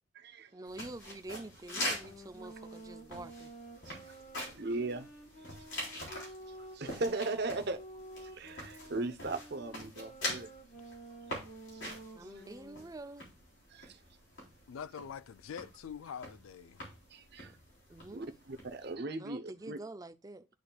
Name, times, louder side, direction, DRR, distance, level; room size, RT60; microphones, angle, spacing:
voice 1, 0.5-3.5 11.9-13.3 17.9-18.3 19.2-20.5, right 2 dB, 20° right, 0.4 m, -47 dB
sound 1, 0.7-18.9, left 1 dB, 70° left, 3.6 m, -44 dB
sound 2, 1.6-7.1 7.7-12.9, right 1 dB, 50° left, 2.1 m, -51 dB
voice 2, 4.5-5.1 6.0-7.8 8.2-10.5 11.7-12.4 13.7-14.0 17.1-17.5 18.1-19.8, right 2 dB, 55° right, 0.8 m, -38 dB
voice 3, 14.7-16.8, left 7 dB, 90° left, 0.4 m, -44 dB
12.0 x 4.3 x 2.3 m
head